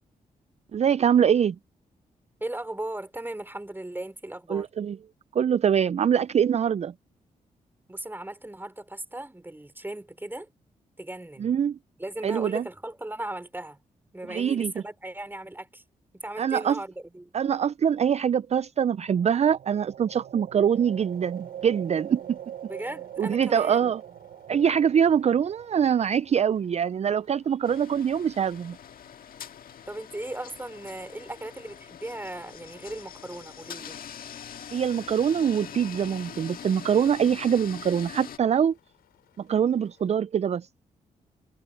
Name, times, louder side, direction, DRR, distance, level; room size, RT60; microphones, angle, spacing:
voice 1, 0.7-1.6 4.5-5.0 5.3-6.9 11.4-11.8 12.2-12.6 14.3-14.8 16.4-16.8 17.3-22.4 23.2-24.0 24.5-28.8 34.7-38.7 39.4-40.7, right 8 dB, 45° right, 0.4 m, -24 dB
voice 2, 2.4-4.7 7.9-10.5 11.0-11.5 12.0-13.8 14.1-15.8 16.1-17.3 22.7-23.9 29.9-34.0, right 1 dB, 15° right, 4.0 m, -37 dB
sound 1, 19.0-27.0, right 10 dB, 70° right, 0.9 m, -43 dB
sound 2, 20.7-40.1, left 12 dB, 85° left, 7.0 m, -65 dB
sound 3, 27.6-38.4, left 8 dB, 70° left, 1.7 m, -43 dB
supercardioid pair, 55°, 15 cm